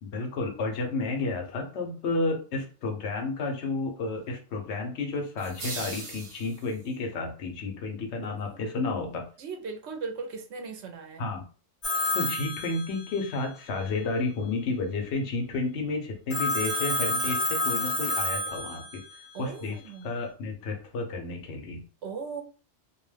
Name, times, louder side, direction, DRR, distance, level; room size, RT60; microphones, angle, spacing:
voice 1, 0.0-9.3 11.2-11.5 12.1-19.0 19.4-19.8 20.0-21.8, left 3 dB, 75° left, 3 dB, 1.0 m, -31 dB
sound 1, 5.4-7.0, right 3 dB, 45° right, 0.7 m, -39 dB
voice 2, 8.2-8.6 9.4-11.3 19.3-20.1 22.0-22.4, right 5 dB, 75° right, 3 dB, 0.8 m, -38 dB
Telephone, 11.8-13.4 16.3-19.1, left 2 dB, 50° left, 0.8 m, -29 dB
2.5 x 2.1 x 3.2 m, 0.38 s
omnidirectional pair, 1.2 m